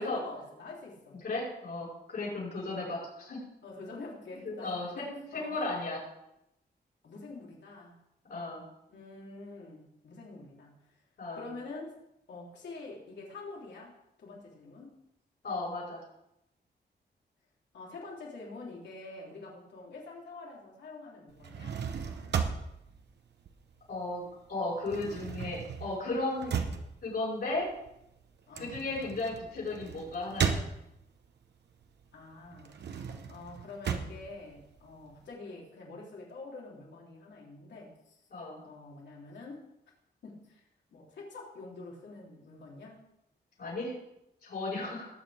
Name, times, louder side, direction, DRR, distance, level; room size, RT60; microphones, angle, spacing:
voice 1, 0.0-1.2 2.2-2.4 3.6-5.6 7.0-8.0 8.9-10.7 11.3-12.0 12.3-15.0 17.7-21.8 28.5-28.8 32.1-32.7 33.3-38.2 38.6-39.7 40.2-40.6 40.9-43.0, left 3 dB, 80° left, -3 dB, 3.4 m, -46 dB
voice 2, 1.2-3.4 4.4-6.0 8.3-8.6 11.2-11.4 15.4-16.0 23.9-26.5 27.0-27.7 28.6-30.6 38.3-38.6 43.6-43.9 44.4-45.1, left 2 dB, 65° left, -7 dB, 5.3 m, -35 dB
sound 1, 21.3-24.2 24.4-31.3 31.7-35.3, right 6 dB, 75° right, 1.1 m, -36 dB
19.0 x 8.7 x 3.5 m, 0.83 s
wide cardioid pair, 165°, 18 cm